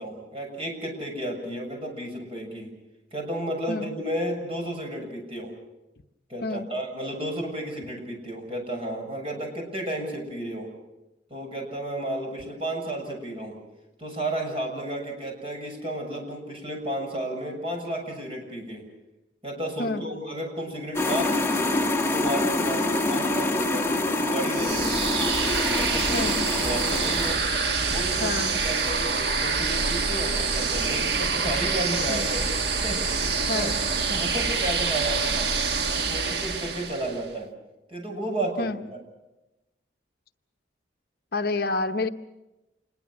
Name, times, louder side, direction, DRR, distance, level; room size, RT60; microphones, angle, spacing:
voice 1, 0.0-2.7 3.1-5.5 6.3-10.7 11.3-13.6 14.0-18.8 19.4-25.0 25.7-27.4 27.9-32.4 32.8-33.7 34.1-35.4 35.8-37.5 37.9-39.0, right 1 dB, 30° right, 2 dB, 6.7 m, -33 dB
sound 1, 20.9-27.3, left 2 dB, 15° left, 1.4 m, -26 dB
sound 2, 24.5-37.2, right 4 dB, 60° right, 1.4 m, -26 dB
voice 2, 28.2-28.6 32.1-32.3 33.5-33.8 38.6-38.8 41.3-42.1, left 3 dB, 55° left, 7 dB, 0.9 m, -28 dB
27.5 x 21.5 x 6.2 m, 0.99 s
head